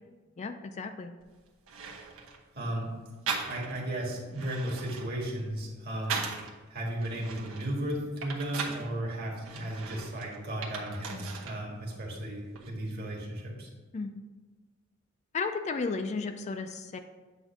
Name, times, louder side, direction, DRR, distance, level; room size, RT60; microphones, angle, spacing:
voice 1, 0.4-1.1 11.1-11.3 13.9-14.2 15.3-17.0, left 4 dB, 35° left, 7 dB, 0.3 m, -34 dB
sound 1, 1.2-1.3 1.7-2.4 3.3-3.9 4.2-6.5 7.0-8.9 9.4-11.6 11.9-12.7, right 5 dB, 80° right, 1.0 m, -38 dB
voice 2, 2.5-2.9 3.5-6.2 6.7-13.7, right 1 dB, 50° right, -2 dB, 1.7 m, -35 dB
7.8 x 2.6 x 5.9 m, 1.3 s
head